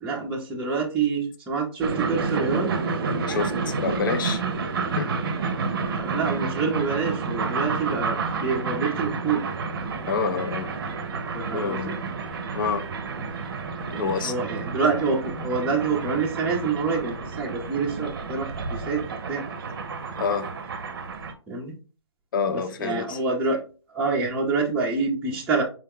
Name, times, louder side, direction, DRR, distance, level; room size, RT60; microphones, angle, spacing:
voice 1, 0.0-2.7 5.9-9.4 11.3-11.9 13.8-19.0 19.3-19.4 21.5-21.7 22.5-23.6 23.9-25.6, right 4 dB, 10° right, 0.6 m, -27 dB
sound 1, 1.8-21.3, right 4 dB, 50° right, 0.6 m, -30 dB
voice 2, 3.3-4.4 4.9-5.2 10.1-10.7 11.5-12.0 12.5-12.9 14.0-14.3 20.2-20.6 22.3-23.2, left 5 dB, 45° left, 0.5 m, -27 dB
4.6 x 2.1 x 3.6 m
hypercardioid pair, 150°, 15 cm